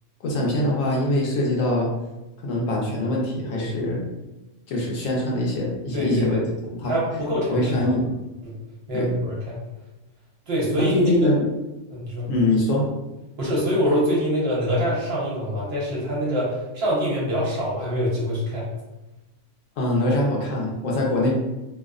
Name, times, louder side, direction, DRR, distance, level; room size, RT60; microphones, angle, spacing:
voice 1, 0.2-1.9 2.4-4.0 4.7-6.4 6.7-6.9 7.5-8.1 8.9-9.1 10.8-11.4 12.3-12.9 19.8-21.3, left 1 dB, 85° left, -2 dB, 1.0 m, -23 dB
voice 2, 3.5-3.9 5.9-6.4 6.8-7.9 8.4-8.6 8.9-9.6 10.5-11.0 11.9-12.3 13.4-18.6, equal, 55° right, -5 dB, 1.0 m, -25 dB
2.7 x 2.0 x 2.3 m, 1.0 s
omnidirectional pair, 1.3 m